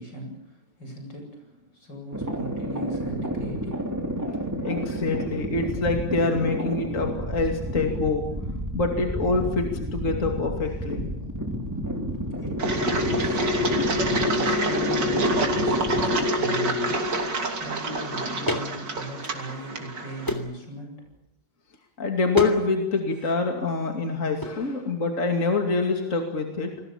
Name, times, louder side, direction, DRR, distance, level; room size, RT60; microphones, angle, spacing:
voice 1, 0.0-3.9 11.6-17.3 17.5-21.1, equal, 80° left, 3 dB, 8.9 m, -38 dB
sound 1, 2.1-16.2, equal, 10° right, 3.5 m, -31 dB
voice 2, 4.6-8.3 8.7-11.0 22.0-26.8, left 3 dB, 45° left, 3 dB, 2.9 m, -25 dB
Engine, 12.6-20.4, equal, 80° right, 3.6 m, -26 dB
sound 2, 18.5-18.7 19.1-19.8 20.2-20.6 22.3-22.6 22.9-23.3 24.4-24.6, left 1 dB, 10° left, 3.1 m, -29 dB
29.5 x 21.0 x 7.3 m, 0.85 s
omnidirectional pair, 1.9 m